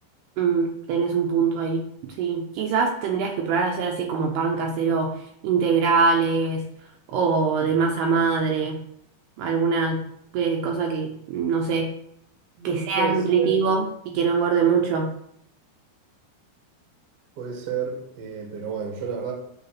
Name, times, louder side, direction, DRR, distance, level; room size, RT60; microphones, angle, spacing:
voice 1, 0.4-1.9 2.2-6.7 7.1-8.8 9.4-10.0 10.3-11.9 12.6-15.1, right 5 dB, 75° right, 2.6 m, -23 dB
voice 2, 12.6-13.6 17.4-19.3, right 6 dB, 55° right, 1.8 m, -31 dB
9.8 x 4.0 x 5.9 m
omnidirectional pair, 5.3 m